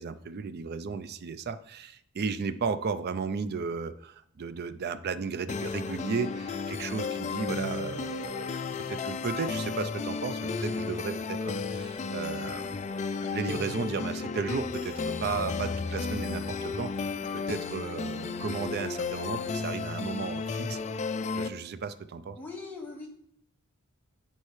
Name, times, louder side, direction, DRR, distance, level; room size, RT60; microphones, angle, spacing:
voice 1, 0.0-20.8 21.4-22.4, right 5 dB, 50° right, 13 dB, 0.4 m, -35 dB
sound 1, 5.5-21.5, left 4 dB, 35° left, 0.4 m, -33 dB
voice 2, 22.4-23.1, left 3 dB, 10° left, -3 dB, 1.3 m, -40 dB
9.7 x 4.5 x 3.1 m, 0.72 s
head